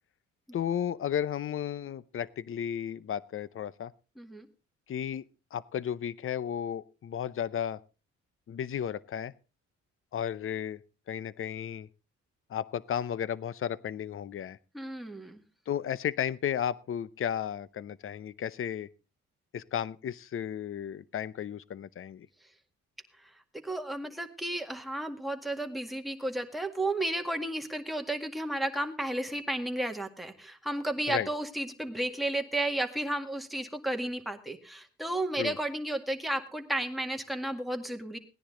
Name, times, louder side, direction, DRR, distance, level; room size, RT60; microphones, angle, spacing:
voice 1, 0.5-3.9 4.9-5.2 5.5-7.8 8.5-9.3 10.1-10.8 11.1-11.9 12.5-14.6 15.7-18.9 19.5-22.3 31.1-31.3 35.4-35.6, left 9 dB, 45° left, 18 dB, 0.7 m, -33 dB
voice 2, 14.7-15.4 23.6-38.2, right 1 dB, ahead, 3 dB, 1.9 m, -33 dB
17.5 x 10.0 x 3.8 m, 0.32 s
cardioid pair, 90°, 30 cm